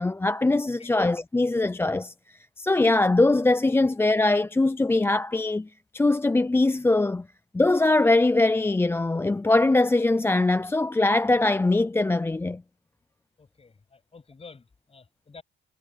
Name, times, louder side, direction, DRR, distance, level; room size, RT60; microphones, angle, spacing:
voice 1, 0.0-2.1 2.6-5.7 5.9-7.3 7.5-12.6, left 2 dB, 10° left, 0.5 m, -22 dB
voice 2, 13.4-15.4, left 4 dB, 30° left, 7.6 m, -50 dB
cardioid pair, 90°, 20 cm